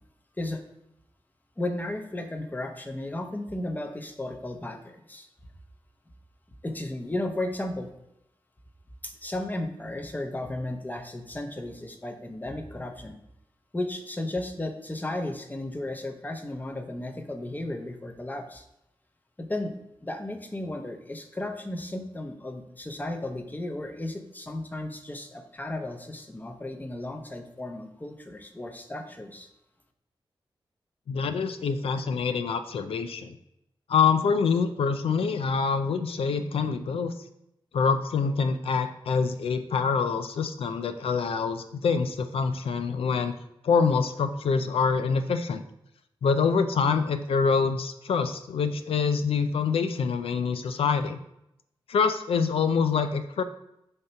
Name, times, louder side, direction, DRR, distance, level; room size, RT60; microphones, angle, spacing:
voice 1, 1.6-5.3 6.6-7.9 9.0-13.2 13.7-18.6 19.4-19.7 20.0-29.5, left 1 dB, 20° left, 6 dB, 0.8 m, -34 dB
voice 2, 31.1-33.4 33.9-37.1 37.7-43.3 43.6-45.6 46.2-51.2 51.9-53.4, left 5 dB, 85° left, 9 dB, 0.4 m, -25 dB
6.3 x 2.9 x 5.6 m, 0.83 s
cardioid pair, 70°, 9 cm